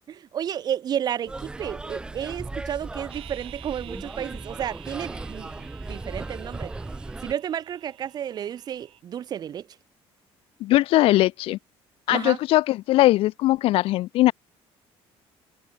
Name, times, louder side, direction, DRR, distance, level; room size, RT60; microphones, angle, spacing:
voice 1, 0.3-5.5 5.9-6.7 7.2-9.7 12.1-12.4, right 9 dB, 40° right, 2.2 m, -31 dB
sound 1, 1.3-7.3, right 2 dB, 10° right, 0.4 m, -37 dB
sound 2, 3.1-9.0, right 14 dB, 55° right, 3.3 m, -49 dB
voice 2, 10.6-11.6 12.1-14.3, left 16 dB, 60° left, 0.4 m, -20 dB
cardioid pair, 170°, 11 cm